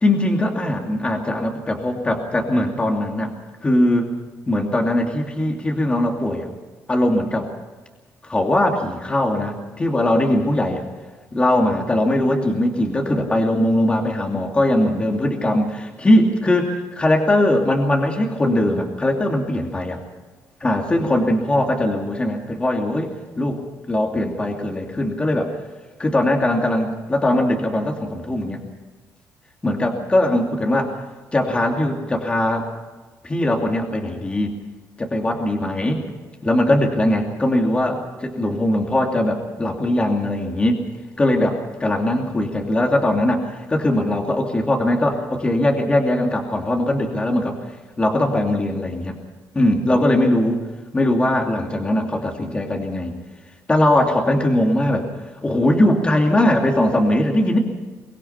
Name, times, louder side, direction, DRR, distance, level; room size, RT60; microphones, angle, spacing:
voice 1, 0.0-3.3 3.6-4.1 4.5-6.5 6.9-7.5 8.2-10.9 11.3-20.0 20.6-23.1 23.4-25.6 26.0-28.6 29.6-30.9 31.3-32.7 33.2-34.5 35.0-36.1 36.4-40.8 41.2-47.6 48.0-49.2 49.5-50.6 50.9-53.1 53.7-55.1 55.4-57.6, left 1 dB, 15° left, 2 dB, 2.7 m, -20 dB
24.0 x 20.5 x 5.9 m, 1.3 s
cardioid pair, 145°, 6 cm